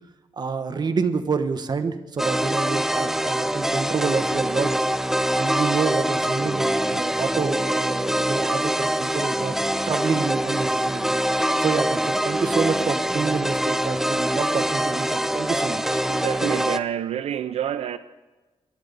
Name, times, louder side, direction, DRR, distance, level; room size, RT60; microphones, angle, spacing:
voice 1, 0.4-4.8 5.4-9.6 9.9-11.1 11.6-16.0, right 5 dB, 40° right, 1.1 m, -28 dB
sound 1, 2.2-16.8, right 1 dB, 5° right, 0.6 m, -24 dB
voice 2, 16.1-18.0, right 10 dB, 80° right, 0.5 m, -27 dB
22.5 x 11.5 x 4.0 m
cardioid pair, 100°, 10 cm